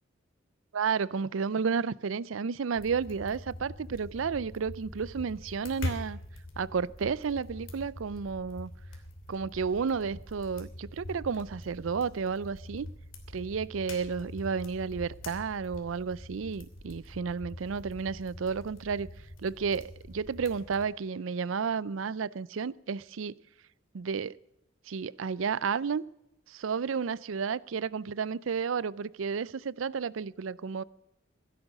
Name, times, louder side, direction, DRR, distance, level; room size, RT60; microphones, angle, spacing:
voice 1, 0.7-6.2 6.6-8.7 9.3-12.9 13.3-19.1 19.4-23.4 23.9-24.4 24.9-26.1 26.5-30.8, right 5 dB, 80° right, 0.5 m, -32 dB
sound 1, 2.8-20.8, left 1 dB, 75° left, 3.0 m, -44 dB
16.0 x 11.0 x 6.4 m
head